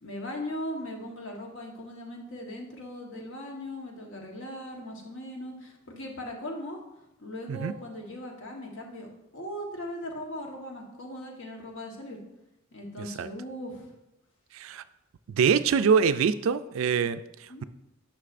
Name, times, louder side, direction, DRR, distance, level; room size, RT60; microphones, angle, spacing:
voice 1, 0.0-6.8 7.2-9.1 9.3-12.2 12.7-13.9 17.5-17.6, left 1 dB, 65° left, 1 dB, 1.2 m, -39 dB
voice 2, 13.0-13.3 14.5-14.8 15.3-17.6, right 6 dB, 70° right, 13 dB, 0.3 m, -25 dB
9.7 x 5.9 x 2.5 m, 0.91 s
head